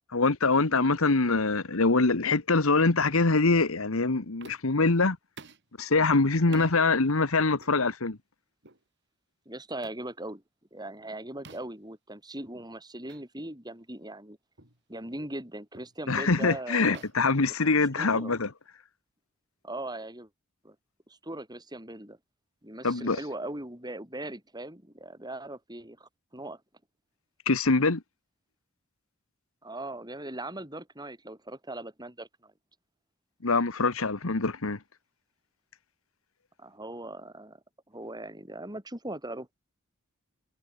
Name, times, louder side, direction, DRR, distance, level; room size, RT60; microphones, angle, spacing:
voice 1, 0.1-5.2 5.8-8.2 16.1-18.5 22.8-23.2 27.5-28.0 33.4-34.8, left 3 dB, 75° left, 1.4 m, -24 dB
sound 1, 4.4-4.8 5.4-5.7 6.5-6.8 7.6-7.8 8.6-8.8 9.8-10.1 11.4-11.8 13.1-13.2 13.7-13.8 14.6-14.8 15.7-16.0 16.9-18.2, right 4 dB, 55° right, 7.9 m, -50 dB
voice 2, 9.5-10.4 10.7-14.4 14.9-17.0 18.0-18.4 19.6-20.3 20.6-20.8 21.1-22.2 22.6-26.6 29.6-32.5 36.6-37.6 37.9-39.5, right 1 dB, 20° right, 7.8 m, -40 dB
head